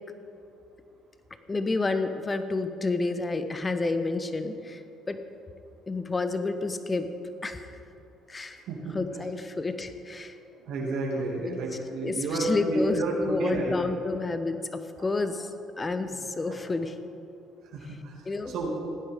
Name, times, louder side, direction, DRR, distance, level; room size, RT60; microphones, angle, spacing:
voice 1, 1.5-4.8 5.1-5.2 5.9-7.1 7.4-7.7 8.3-8.6 8.9-10.3 10.8-10.9 11.4-11.6 12.0-15.5 15.8-16.9 18.3-18.6, left 3 dB, 25° left, 9 dB, 1.0 m, -30 dB
voice 2, 10.6-13.7 17.7-18.1 18.5-18.7, right 2 dB, 70° right, -2 dB, 2.4 m, -30 dB
17.5 x 9.9 x 3.7 m, 2.7 s
hypercardioid pair, 60°, 0 cm